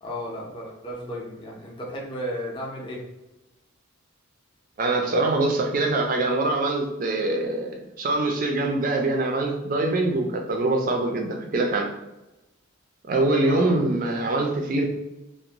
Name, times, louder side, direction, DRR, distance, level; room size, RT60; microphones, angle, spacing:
voice 1, 0.0-3.0 13.4-13.9, equal, 25° left, -3 dB, 0.5 m, -34 dB
voice 2, 4.8-11.9 13.1-14.9, right 2 dB, 40° right, 2 dB, 0.3 m, -24 dB
2.5 x 2.0 x 2.8 m, 1.0 s
head